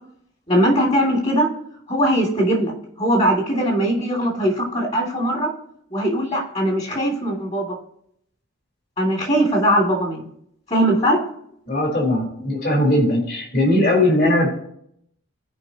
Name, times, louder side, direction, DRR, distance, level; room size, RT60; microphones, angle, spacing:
voice 1, 0.5-1.5 1.9-2.7 3.0-5.5 5.9-7.8 9.0-10.2 10.7-11.2, equal, 30° left, 0 dB, 2.6 m, -20 dB
voice 2, 11.7-14.5, left 1 dB, 45° left, -1 dB, 3.9 m, -19 dB
16.0 x 5.4 x 2.9 m, 0.69 s
head